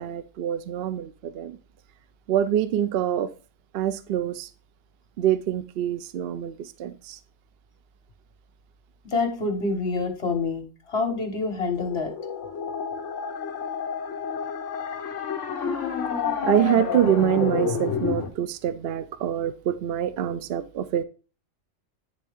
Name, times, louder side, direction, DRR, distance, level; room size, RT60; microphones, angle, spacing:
voice 1, 0.0-1.6 2.3-3.3 3.7-4.5 5.2-7.2 16.4-21.0, right 10 dB, 60° right, 12 dB, 0.7 m, -25 dB
voice 2, 9.1-12.1, left 3 dB, 50° left, 3 dB, 1.7 m, -27 dB
sound 1, 11.8-18.3, left 6 dB, 65° left, 1.4 m, -29 dB
9.2 x 3.6 x 3.5 m, 0.35 s
omnidirectional pair, 1.4 m